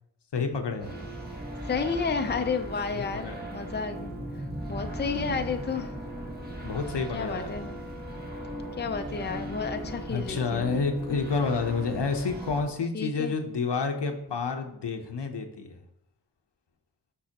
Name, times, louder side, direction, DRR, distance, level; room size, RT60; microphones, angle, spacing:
voice 1, 0.3-1.0 2.4-2.5 2.9-3.4 5.1-5.4 6.6-7.5 10.1-15.8, left 4 dB, 90° left, 5 dB, 0.8 m, -30 dB
sound 1, 0.8-12.6, right 1 dB, 25° right, 1.5 m, -38 dB
voice 2, 1.7-4.1 4.7-5.9 7.1-7.8 8.8-10.8 12.9-13.3, left 5 dB, 25° left, 6 dB, 0.5 m, -31 dB
6.6 x 5.6 x 2.9 m, 0.76 s
wide cardioid pair, 60°, 41 cm